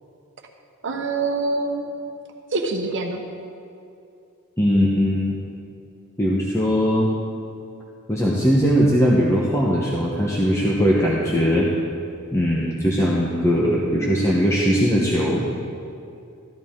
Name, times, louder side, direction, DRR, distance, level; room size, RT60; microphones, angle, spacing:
voice 1, 0.8-1.9 2.5-3.2, right 3 dB, 60° right, 3 dB, 1.0 m, -25 dB
voice 2, 4.6-5.4 6.2-7.1 8.1-11.7 12.3-15.4, equal, 15° left, -4 dB, 1.0 m, -20 dB
14.5 x 11.0 x 3.7 m, 2.6 s
head